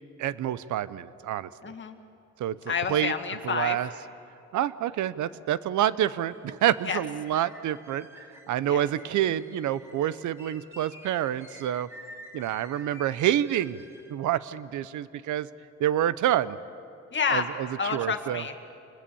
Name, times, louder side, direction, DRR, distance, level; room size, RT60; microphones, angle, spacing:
voice 1, 0.2-1.5 2.4-3.1 3.4-3.9 4.5-8.1 8.5-11.9 12.3-13.8 14.1-15.5 15.8-16.6 17.3-18.4, right 11 dB, 75° right, 16 dB, 0.8 m, -27 dB
voice 2, 1.6-2.0 2.7-3.8 6.9-7.0 8.7-8.8 17.1-17.5 17.8-18.6, left 6 dB, 40° left, 5 dB, 2.0 m, -29 dB
sound 1, 6.3-14.1, equal, 10° right, 4.7 m, -50 dB
27.0 x 21.0 x 7.1 m, 2.7 s
cardioid pair, 90°, 30 cm